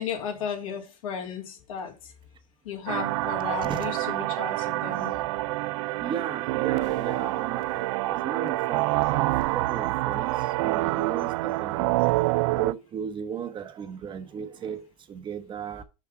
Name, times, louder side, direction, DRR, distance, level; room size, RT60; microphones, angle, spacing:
voice 1, 0.0-1.9 2.6-5.1, left 7 dB, 80° left, 2.8 m, -34 dB
sound 1, 2.9-12.7, right 19 dB, 60° right, 0.4 m, -27 dB
voice 2, 3.6-3.9 6.0-12.2 12.5-15.8, right 8 dB, 30° right, 0.9 m, -36 dB
6.0 x 5.8 x 5.6 m
hypercardioid pair, 115°, 17 cm